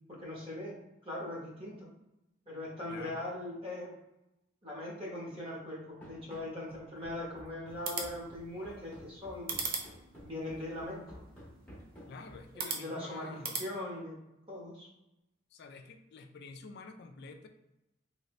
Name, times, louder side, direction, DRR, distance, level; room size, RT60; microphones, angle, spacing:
voice 1, 0.1-0.8 1.0-1.9 2.5-3.9 4.6-9.5 10.2-11.0 12.5-13.3 13.6-14.2 14.5-14.9, left 1 dB, 25° right, -5 dB, 1.1 m, -40 dB
voice 2, 2.9-3.2 12.1-13.5 15.5-17.5, left 4 dB, 55° left, 5 dB, 0.3 m, -49 dB
Run, 6.0-12.6, equal, 5° left, 0.9 m, -52 dB
sound 1, 7.7-13.7, right 5 dB, 45° right, 0.5 m, -42 dB
3.2 x 2.7 x 3.1 m, 0.91 s
head